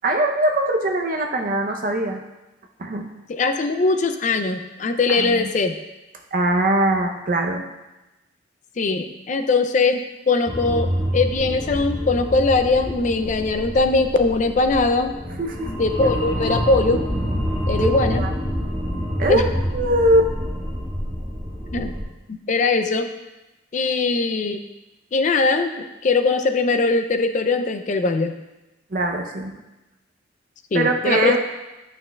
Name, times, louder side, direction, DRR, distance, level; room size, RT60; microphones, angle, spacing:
voice 1, 0.0-2.2 2.8-3.0 5.1-5.5 6.3-7.6 15.4-15.7 18.2-18.3 19.2-19.4 19.7-20.3 28.9-29.5 30.7-31.4, right 1 dB, 45° right, 3 dB, 0.6 m, -21 dB
voice 2, 3.3-5.8 8.8-15.2 15.8-17.1 17.7-18.2 19.3-19.5 21.7-21.9 22.5-23.1 23.7-24.6 25.1-28.3 30.7-31.4, left 3 dB, 40° left, 8 dB, 0.3 m, -21 dB
sound 1, 10.5-22.0, equal, 5° right, 1.4 m, -27 dB
8.6 x 5.9 x 2.3 m, 1.0 s
head